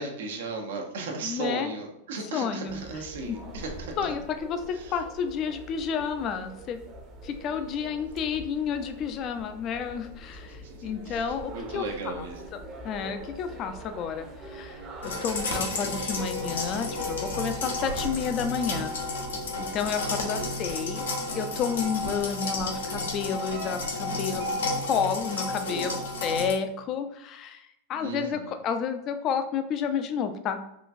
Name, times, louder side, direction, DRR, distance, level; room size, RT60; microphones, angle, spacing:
voice 1, 0.0-3.9 4.7-5.0 7.5-8.0 10.6-12.4 20.0-20.2 25.7-26.3 27.9-28.5, right 3 dB, 70° right, 2 dB, 0.7 m, -36 dB
voice 2, 1.2-1.7 2.3-2.7 3.3-3.4 4.0-6.8 7.2-12.3 12.8-14.8 15.2-18.9 19.6-21.1 21.3-26.0 26.2-30.6, left 7 dB, 40° left, 8 dB, 0.4 m, -31 dB
sound 1, 2.7-20.7, right 1 dB, 35° right, 0.7 m, -44 dB
sound 2, 15.0-26.5, left 2 dB, 80° left, 0.7 m, -32 dB
sound 3, 16.1-25.1, left 1 dB, 90° right, 1.0 m, -40 dB
3.7 x 2.3 x 2.6 m, 0.79 s
hypercardioid pair, 95°, 0 cm